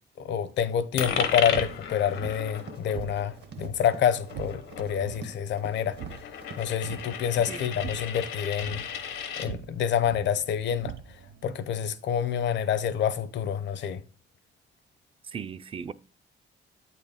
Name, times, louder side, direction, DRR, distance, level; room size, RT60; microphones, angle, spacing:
voice 1, 0.2-6.0 6.6-8.9 9.4-10.9 11.4-14.0, left 9 dB, 65° left, 0.7 m, -27 dB
sound 1, 0.9-11.5, right 9 dB, 80° right, 0.5 m, -44 dB
Coin (dropping), 1.0-9.5, left 7 dB, 85° left, 1.0 m, -35 dB
Run, 1.9-7.1 7.4-7.5, right 5 dB, 60° right, 1.1 m, -47 dB
voice 2, 15.2-15.9, right 6 dB, 30° right, 0.4 m, -37 dB
8.4 x 4.3 x 3.6 m
cardioid pair, 90°, 20 cm